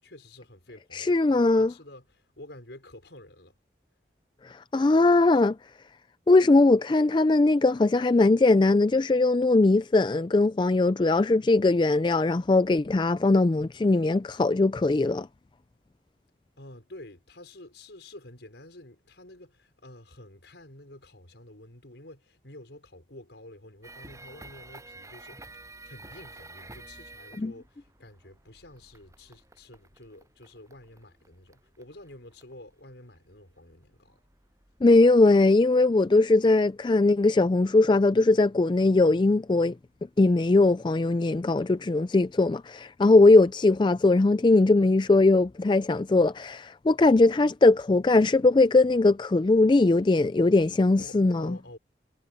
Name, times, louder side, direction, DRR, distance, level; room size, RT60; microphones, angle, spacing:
voice 1, 0.0-3.6 16.6-34.2 51.0-51.8, left 1 dB, 75° left, 5.2 m, -49 dB
voice 2, 0.9-1.7 4.4-5.6 6.3-15.3 27.4-27.5 34.8-39.7 40.2-51.5, left 2 dB, 25° left, 0.3 m, -20 dB
sound 1, 23.8-39.2 39.9-40.1 40.5-41.1 41.7-41.8 42.3-42.4, right 2 dB, 15° right, 7.8 m, -51 dB
head